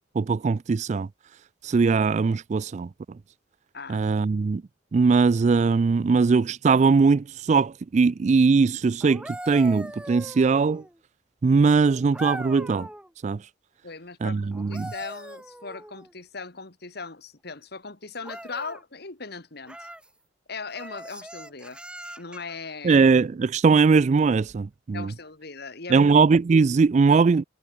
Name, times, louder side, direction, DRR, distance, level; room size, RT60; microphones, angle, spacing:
voice 1, 0.2-1.1 1.6-2.9 3.9-4.6 4.9-10.8 11.4-12.9 13.2-13.4 14.2-14.9 22.8-25.1 25.9-27.4, right 4 dB, 40° right, 0.3 m, -20 dB
sound 1, 9.0-11.0 12.1-13.1 14.5-16.1 18.2-18.8 19.6-20.1 20.7-22.6 24.4-24.6, right 1 dB, 5° right, 2.1 m, -40 dB
voice 2, 13.8-19.9 20.5-21.8 22.2-23.0 24.9-26.2 27.1-27.2, left 4 dB, 60° left, 2.4 m, -39 dB
head